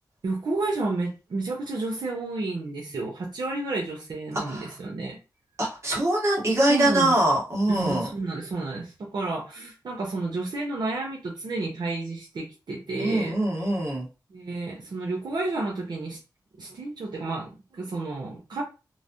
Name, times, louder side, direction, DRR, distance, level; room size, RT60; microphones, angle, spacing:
voice 1, 0.2-5.2 6.7-7.1 7.7-13.3 14.3-16.2 16.6-18.6, right 3 dB, 75° right, -2 dB, 0.7 m, -31 dB
voice 2, 4.3-4.7 5.6-8.1 13.0-14.1, right 1 dB, 40° right, -4 dB, 1.4 m, -23 dB
3.1 x 2.0 x 2.6 m, 0.30 s
wide cardioid pair, 80°, 7 cm